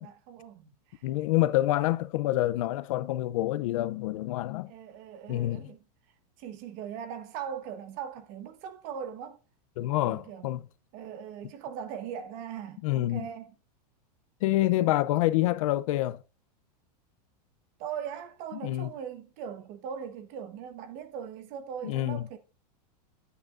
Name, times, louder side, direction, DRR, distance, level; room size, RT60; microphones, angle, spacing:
voice 1, 0.0-1.0 4.7-5.8 6.4-9.4 9.9-10.5 10.9-13.5 17.8-22.4, right 8 dB, 35° right, 1.1 m, -40 dB
voice 2, 1.0-4.7 5.3-5.7 9.8-10.6 12.8-13.3 14.4-16.2 18.5-18.9 21.8-22.3, left 15 dB, 55° left, 0.5 m, -27 dB
9.0 x 8.6 x 2.5 m
supercardioid pair, 165°, 21 cm